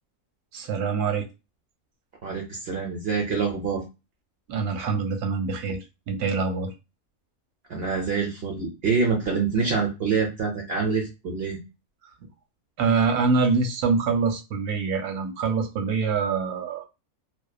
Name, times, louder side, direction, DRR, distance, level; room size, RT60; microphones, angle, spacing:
voice 1, 0.5-1.3 4.5-6.7 12.8-16.8, right 4 dB, 90° right, 5 dB, 1.1 m, -25 dB
voice 2, 2.2-3.8 7.7-11.6, right 5 dB, 65° right, 1 dB, 0.6 m, -26 dB
2.7 x 2.1 x 2.3 m, 0.27 s
omnidirectional pair, 1.6 m